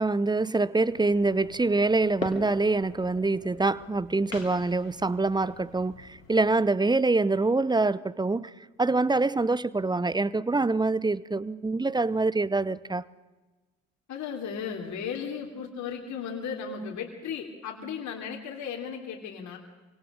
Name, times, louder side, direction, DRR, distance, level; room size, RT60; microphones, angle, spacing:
voice 1, 0.0-8.5 8.8-13.0, right 3 dB, 10° right, 0.8 m, -25 dB
sound 1, 0.8-6.5, left 3 dB, 85° left, 2.3 m, -43 dB
voice 2, 14.1-19.6, left 6 dB, 45° left, 3.3 m, -35 dB
26.0 x 25.0 x 6.5 m
figure-of-eight pair, 50°, 39 cm